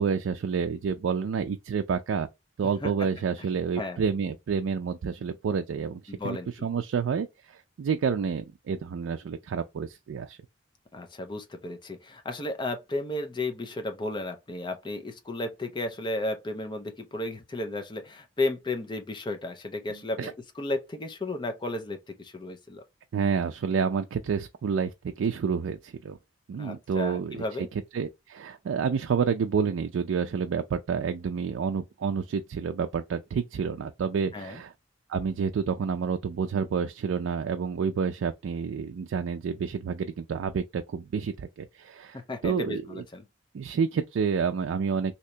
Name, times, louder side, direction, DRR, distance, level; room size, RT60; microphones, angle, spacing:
voice 1, 0.0-2.3 2.6-10.4 19.9-20.3 23.1-26.2 26.5-27.4 27.9-34.7 35.1-43.0 43.5-45.1, right 6 dB, 85° right, 0.3 m, -29 dB
voice 2, 6.1-6.7 10.9-22.8 26.6-27.7 34.3-34.6 42.1-43.2, left 2 dB, 25° left, 0.5 m, -34 dB
2.9 x 2.7 x 3.2 m
head